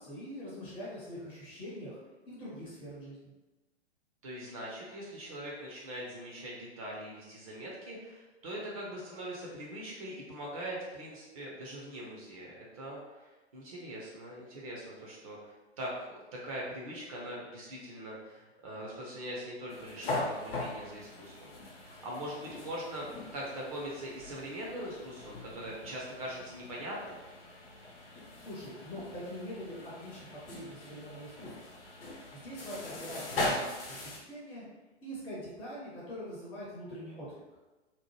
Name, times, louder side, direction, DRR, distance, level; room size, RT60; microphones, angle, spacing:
voice 1, 0.0-2.0 2.3-3.3 28.4-31.7 32.3-34.7 35.0-37.4, equal, 15° left, -7 dB, 0.6 m, -43 dB
voice 2, 4.2-27.2, right 1 dB, 30° right, -3 dB, 0.5 m, -42 dB
sound 1, 19.7-34.2, left 2 dB, 55° left, 0.8 m, -40 dB
2.7 x 2.0 x 3.0 m, 1.1 s
figure-of-eight pair, 115°, 35 cm